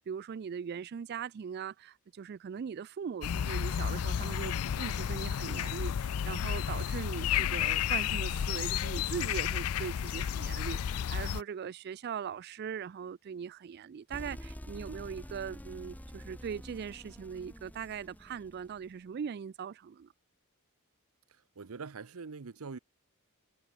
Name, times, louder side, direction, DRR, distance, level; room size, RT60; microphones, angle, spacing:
voice 1, 0.0-20.1, right 7 dB, 50° right, 0.3 m, -40 dB
sound 1, 3.2-11.4, left 9 dB, 85° left, 0.4 m, -32 dB
sound 2, 14.1-18.9, equal, 5° left, 1.0 m, -47 dB
voice 2, 21.3-22.8, right 4 dB, 75° right, 0.7 m, -44 dB
head